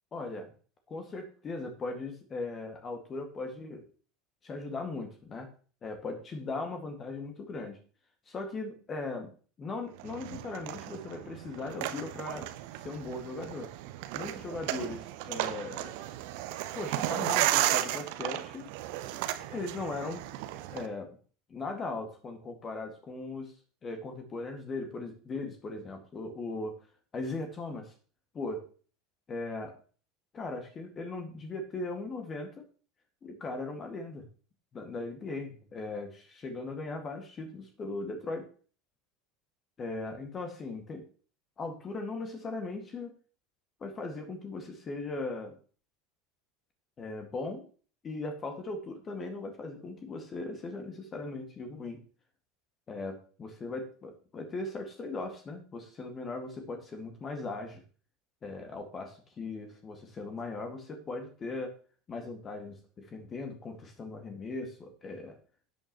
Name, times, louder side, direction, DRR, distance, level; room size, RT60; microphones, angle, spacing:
voice 1, 0.1-0.5 0.9-3.8 4.4-5.5 5.8-7.8 8.3-9.3 9.6-12.5 12.8-13.7 14.1-15.9 16.7-18.7 19.4-20.3 20.7-21.1 21.5-23.5 23.8-26.7 27.1-27.9 28.3-28.7 29.3-29.8 30.3-32.6 33.2-34.3 34.7-38.5 39.8-41.0 41.6-43.1 43.8-45.6 47.0-47.6 48.0-52.0 52.9-57.8 58.4-61.8 62.1-65.4, left 3 dB, 30° left, 5 dB, 2.0 m, -38 dB
sound 1, 10.0-20.9, right 14 dB, 55° right, 0.9 m, -34 dB
12.5 x 8.8 x 3.0 m, 0.39 s
figure-of-eight pair, 75°, 0 cm